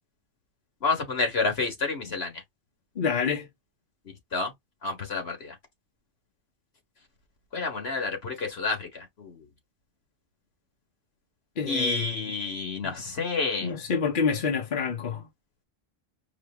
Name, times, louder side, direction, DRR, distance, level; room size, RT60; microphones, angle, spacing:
voice 1, 0.8-2.3 4.3-4.5 4.8-5.5 7.5-9.4 11.7-13.7, left 3 dB, 75° left, 1.9 m, -29 dB
voice 2, 3.0-3.5 11.6-12.3 12.8-12.9 13.6-15.3, left 6 dB, 55° left, 1.1 m, -28 dB
4.9 x 2.7 x 3.4 m
omnidirectional pair, 1.1 m